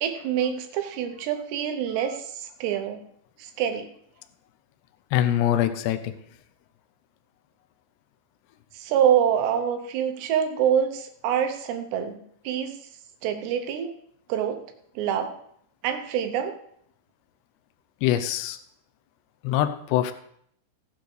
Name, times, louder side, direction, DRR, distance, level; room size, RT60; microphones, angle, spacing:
voice 1, 0.0-3.0 3.4-3.9 8.7-12.8 13.2-13.9 14.3-14.6 15.0-15.4 15.8-16.6, right 9 dB, 75° right, 6 dB, 2.7 m, -26 dB
voice 2, 5.1-6.1 18.0-18.6 19.4-20.1, left 12 dB, 80° left, 9 dB, 2.5 m, -23 dB
16.5 x 9.4 x 3.3 m, 0.68 s
omnidirectional pair, 5.6 m